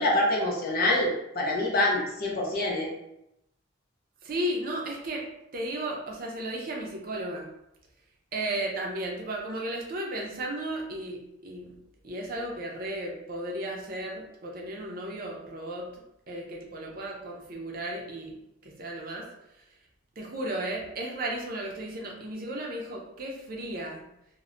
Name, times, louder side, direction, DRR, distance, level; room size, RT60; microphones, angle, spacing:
voice 1, 0.0-2.9, left 1 dB, 45° left, -3 dB, 0.7 m, -26 dB
voice 2, 4.2-5.2 5.5-7.5 8.3-11.7 12.0-18.4 18.6-19.3 20.2-24.0, right 1 dB, 45° right, -1 dB, 0.5 m, -34 dB
2.1 x 2.1 x 3.7 m, 0.83 s
head